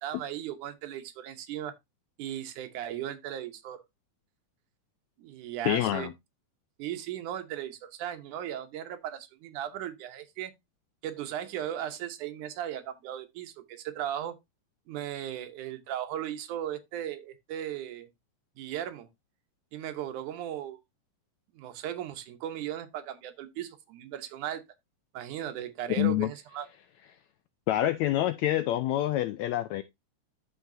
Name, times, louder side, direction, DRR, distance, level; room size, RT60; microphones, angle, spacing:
voice 1, 0.0-1.7 2.2-3.8 5.2-6.1 6.8-10.5 11.0-14.4 14.9-18.1 18.6-19.1 19.7-20.8 21.6-24.6 25.1-26.7, right 11 dB, 75° right, 2.4 m, -37 dB
voice 2, 5.6-6.1 26.0-26.3 27.7-29.8, left 14 dB, 80° left, 1.6 m, -27 dB
13.5 x 4.8 x 2.6 m
omnidirectional pair, 3.7 m